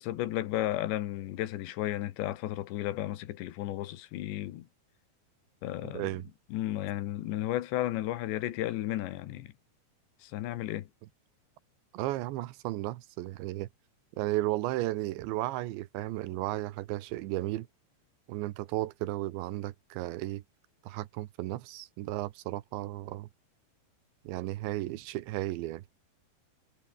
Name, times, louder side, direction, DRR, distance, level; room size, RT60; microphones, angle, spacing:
voice 1, 0.0-4.7 5.6-6.1 6.5-9.5 10.2-10.9, left 14 dB, 75° left, 3.6 m, -33 dB
voice 2, 5.8-6.3 11.9-13.7 14.2-17.7 18.3-20.4 20.8-23.3 24.3-25.8, right 16 dB, 80° right, 3.4 m, -34 dB
omnidirectional pair, 5.2 m